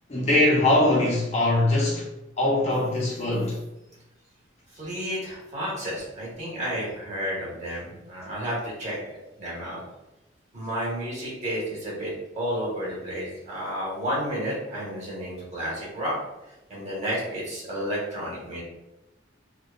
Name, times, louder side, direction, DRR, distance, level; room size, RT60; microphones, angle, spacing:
voice 1, 0.1-2.1 2.4-3.6, left 1 dB, 35° left, 0.7 m, -22 dB
voice 2, 4.8-9.0 9.4-9.8 10.5-16.1 16.7-18.6, equal, 40° right, 1.1 m, -31 dB
2.7 x 2.3 x 2.3 m
head